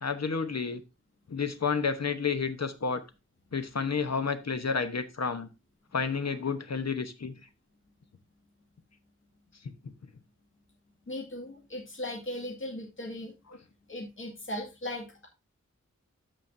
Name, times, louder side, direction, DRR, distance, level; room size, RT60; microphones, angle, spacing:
voice 1, 0.0-0.8 1.3-3.0 3.5-5.5 5.9-7.4 9.6-9.9, left 5 dB, 60° left, 1.0 m, -30 dB
voice 2, 11.1-13.3 13.9-15.3, left 1 dB, 40° left, 2.0 m, -38 dB
13.0 x 5.2 x 2.7 m
wide cardioid pair, 90°, 30 cm